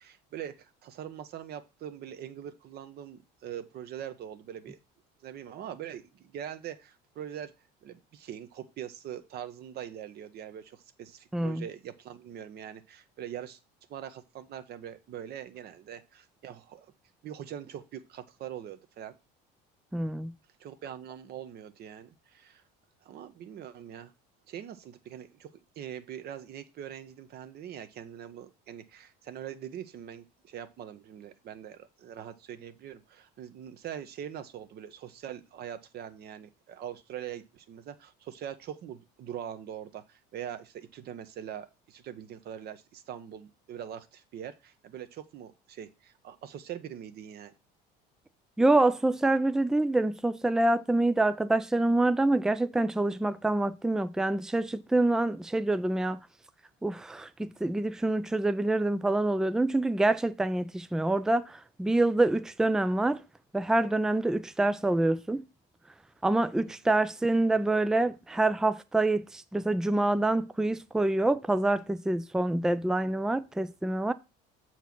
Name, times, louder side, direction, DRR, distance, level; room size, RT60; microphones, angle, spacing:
voice 1, 0.0-4.8 5.2-7.5 7.8-13.6 13.9-16.9 17.2-19.1 20.6-22.6 23.0-24.1 24.5-47.5 66.6-66.7, right 10 dB, 50° right, 1.1 m, -42 dB
voice 2, 11.3-11.6 19.9-20.3 48.6-56.2 56.8-63.2 63.5-65.5 66.2-74.1, right 2 dB, 5° right, 0.4 m, -26 dB
7.0 x 4.6 x 6.0 m
cardioid pair, 115°, 20 cm